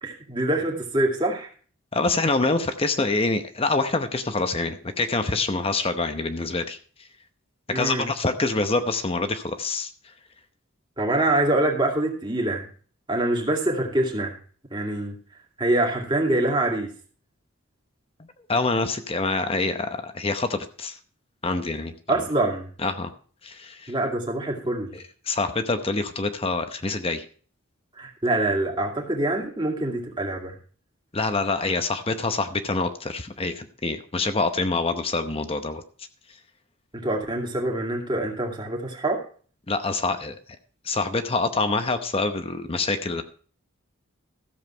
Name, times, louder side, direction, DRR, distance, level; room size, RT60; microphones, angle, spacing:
voice 1, 0.0-1.5 7.7-8.1 11.0-12.7 13.1-14.4 14.7-15.2 15.6-16.9 22.1-22.7 23.9-24.9 27.9-30.6 36.9-39.2, right 1 dB, 20° right, 0 dB, 2.4 m, -25 dB
voice 2, 1.9-6.8 7.7-9.9 18.5-21.0 21.4-21.9 22.8-23.1 23.4-23.9 24.9-27.2 31.1-35.8 39.7-40.3 40.8-43.2, left 3 dB, 25° left, 9 dB, 0.8 m, -26 dB
14.0 x 7.5 x 4.4 m, 0.43 s
head